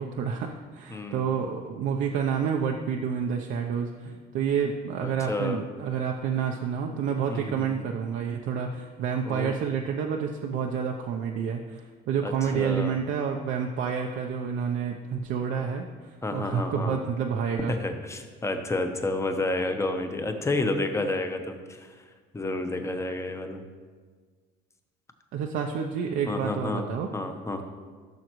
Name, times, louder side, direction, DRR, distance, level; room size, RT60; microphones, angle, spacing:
voice 1, 0.0-17.7 25.3-27.1, right 7 dB, 70° right, 1 dB, 0.6 m, -29 dB
voice 2, 0.9-1.2 5.0-5.6 7.3-7.9 9.2-9.6 12.2-12.9 16.2-17.0 17.7-21.9 22.3-23.6 26.3-26.8 27.1-27.6, left 2 dB, 15° left, 6 dB, 0.8 m, -30 dB
14.5 x 6.3 x 3.1 m, 1.5 s
cardioid pair, 115°, 20 cm